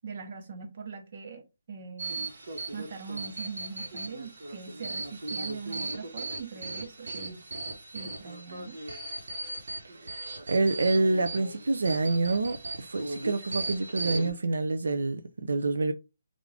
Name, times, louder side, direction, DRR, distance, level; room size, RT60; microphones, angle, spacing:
voice 1, 0.0-1.4 1.7-2.3 2.7-7.4 7.9-8.8, right 5 dB, 30° right, 0.8 m, -41 dB
sound 1, 2.0-14.3, right 2 dB, 65° right, 1.1 m, -37 dB
voice 2, 10.5-15.9, right 3 dB, 90° right, 0.5 m, -27 dB
3.6 x 2.5 x 3.3 m
hypercardioid pair, 180°, 0 cm